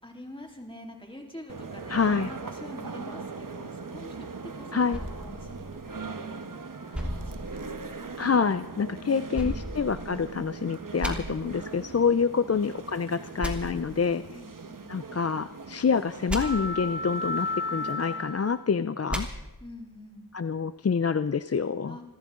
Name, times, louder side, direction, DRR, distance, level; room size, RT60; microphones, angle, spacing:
voice 1, 0.0-8.1 9.0-9.7 12.1-12.7 14.3-14.9 19.6-20.3 21.8-22.0, left 1 dB, 15° left, 1 dB, 3.6 m, -46 dB
sound 1, 1.5-18.6, right 1 dB, 60° right, 1.3 m, -38 dB
voice 2, 1.9-2.3 4.7-5.0 8.2-14.2 14.9-19.3 20.3-22.0, left 5 dB, 40° left, 12 dB, 0.5 m, -27 dB
sound 2, 4.9-6.3 6.9-8.2 9.3-10.5 11.0-11.1 13.4-13.5 16.3-16.4 19.1-19.2, equal, 5° right, 3.0 m, -35 dB
27.5 x 14.0 x 3.8 m, 1.0 s
wide cardioid pair, 55°, 37 cm